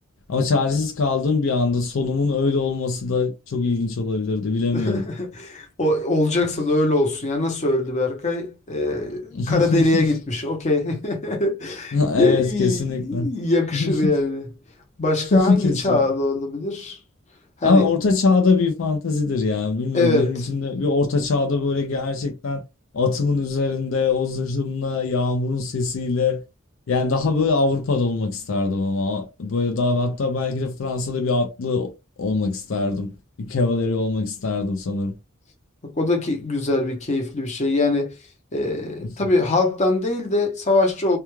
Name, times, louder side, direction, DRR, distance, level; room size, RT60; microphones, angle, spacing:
voice 1, 0.3-5.0 9.3-10.0 11.9-13.3 13.7-14.1 15.3-16.0 17.6-22.6 22.9-26.4 26.9-31.9 32.2-33.1 33.4-35.1, left 3 dB, 65° left, 0.5 m, -22 dB
voice 2, 4.7-14.5 15.0-17.0 17.6-17.9 19.9-20.5 35.9-38.2 38.5-41.2, left 2 dB, 35° left, 0.7 m, -22 dB
2.3 x 2.2 x 3.0 m
head